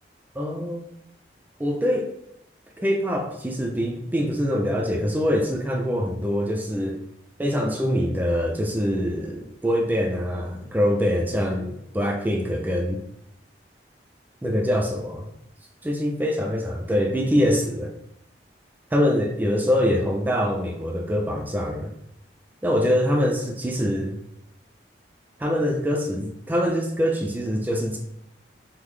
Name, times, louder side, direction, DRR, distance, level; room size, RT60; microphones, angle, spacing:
voice 1, 0.4-0.9 1.6-2.1 2.8-7.0 7.4-13.0 14.4-15.3 15.8-17.9 18.9-21.9 22.6-24.2 25.4-28.0, equal, 10° right, 2 dB, 0.3 m, -24 dB
3.6 x 2.0 x 3.2 m, 0.74 s
head